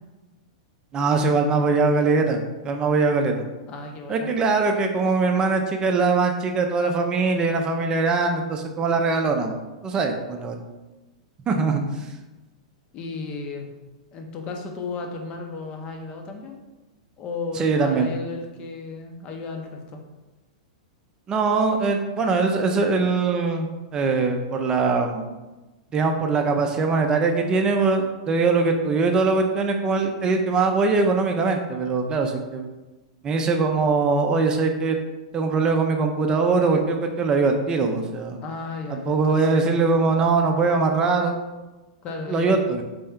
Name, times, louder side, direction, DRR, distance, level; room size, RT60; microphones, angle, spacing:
voice 1, 0.9-3.4 4.1-9.6 9.8-10.6 11.5-11.8 17.5-18.1 21.3-25.3 25.9-32.7 33.2-35.0 35.3-38.4 38.9-41.4 42.3-42.8, right 4 dB, 25° right, 4 dB, 0.6 m, -22 dB
voice 2, 3.7-4.3 12.9-13.7 14.1-16.6 17.2-20.0 38.4-39.8 42.0-42.7, left 3 dB, 30° left, 3 dB, 0.8 m, -34 dB
4.2 x 3.4 x 3.6 m, 1.1 s
figure-of-eight pair, 100°, 3 cm